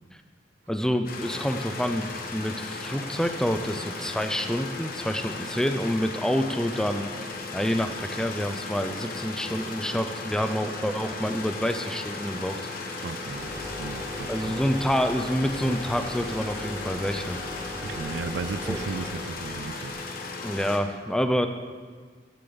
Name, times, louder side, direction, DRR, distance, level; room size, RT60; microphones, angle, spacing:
voice 1, 0.7-7.1 7.5-12.6 14.3-17.4 18.6-18.8 20.4-21.5, equal, 5° left, 7 dB, 0.5 m, -27 dB
sound 1, 1.1-20.8, left 3 dB, 55° left, 1.1 m, -36 dB
sound 2, 1.8-19.9, right 2 dB, 65° right, 1.7 m, -47 dB
voice 2, 13.0-14.6 17.8-20.0, right 4 dB, 80° right, 13 dB, 0.4 m, -35 dB
sound 3, 13.2-19.3, left 1 dB, 15° right, 2.0 m, -39 dB
10.0 x 9.3 x 4.0 m, 1.5 s
head